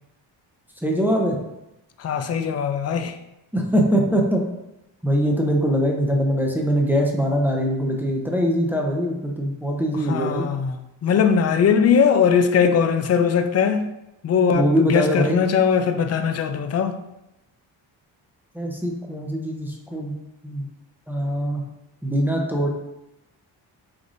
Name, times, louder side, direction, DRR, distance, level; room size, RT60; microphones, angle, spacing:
voice 1, 0.8-1.4 3.5-4.4 5.0-10.5 14.5-15.4 18.5-20.1 20.4-20.7 21.1-21.6 22.0-22.7, equal, 5° right, 0.7 m, -22 dB
voice 2, 2.0-3.2 9.9-13.9 14.2-17.0, left 7 dB, 35° left, 0.4 m, -20 dB
5.0 x 2.5 x 2.6 m
supercardioid pair, 55°, 50 cm